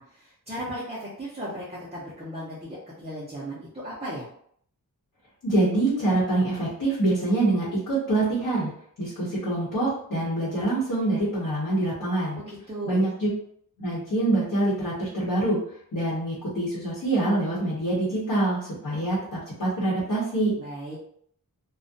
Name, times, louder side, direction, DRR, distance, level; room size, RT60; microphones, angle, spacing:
voice 1, 0.0-4.3 12.3-13.0 20.6-21.0, equal, 20° right, -7 dB, 0.6 m, -36 dB
voice 2, 5.4-8.7 9.0-12.4 12.8-13.3 13.8-15.6 15.9-20.5, right 2 dB, 70° left, -8 dB, 1.0 m, -25 dB
2.3 x 2.1 x 2.6 m, 0.64 s
wide cardioid pair, 100°, 35 cm